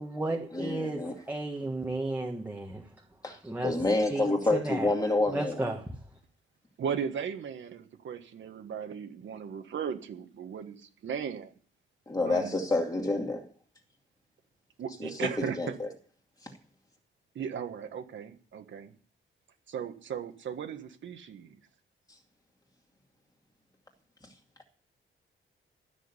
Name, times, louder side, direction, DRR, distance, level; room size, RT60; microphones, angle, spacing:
voice 1, 0.0-2.8 3.3-3.7 4.1-4.3 4.5-4.9 5.3-5.8, right 2 dB, 10° right, 1.4 m, -33 dB
voice 2, 0.5-1.1 3.2-5.7 12.1-13.5 15.0-15.1 15.4-15.9, left 2 dB, 15° left, 2.4 m, -28 dB
voice 3, 6.8-11.5 12.2-12.6 14.8-15.7 17.3-18.9 19.7-21.6, right 7 dB, 65° right, 1.6 m, -37 dB
13.0 x 6.4 x 9.7 m
wide cardioid pair, 145°, 21 cm